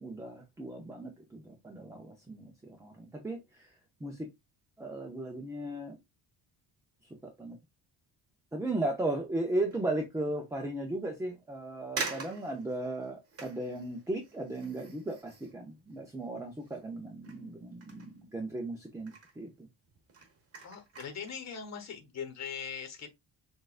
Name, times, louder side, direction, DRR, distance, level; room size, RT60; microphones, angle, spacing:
voice 1, 0.0-3.7 4.0-4.3 4.8-6.0 7.2-7.6 8.5-19.5, right 2 dB, 5° right, 0.5 m, -36 dB
sound 1, 9.6-10.0 10.5-10.6 11.4-11.5 12.0-16.9 17.2-18.7 19.0-19.4 19.9-21.4 21.8-22.0, right 4 dB, 35° right, 1.0 m, -44 dB
voice 2, 20.6-23.2, left 7 dB, 40° left, 1.1 m, -41 dB
6.1 x 2.5 x 2.4 m
cardioid pair, 150°, 43 cm